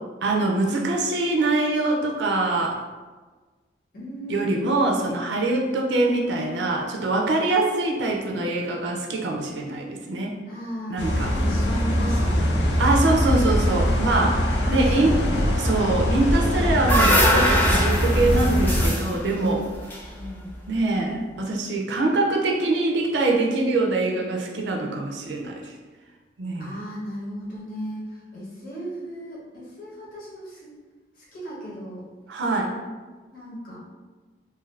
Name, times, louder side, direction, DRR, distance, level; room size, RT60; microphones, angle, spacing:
voice 1, 0.2-2.8 4.3-10.4 10.9-11.3 12.8-15.2 15.6-19.7 20.7-25.7 26.4-26.7 32.3-32.7, right 2 dB, 80° right, 0 dB, 0.4 m, -24 dB
voice 2, 3.9-5.0 10.5-12.9 14.6-15.5 20.1-20.5 26.6-30.7 31.2-32.0 33.3-33.8, equal, 55° left, -7 dB, 0.9 m, -36 dB
sound 1, 11.0-18.9, equal, 80° left, 0.5 m, -22 dB
sound 2, 16.4-20.7, equal, 10° left, 0.5 m, -23 dB
2.6 x 2.4 x 3.1 m, 1.3 s
head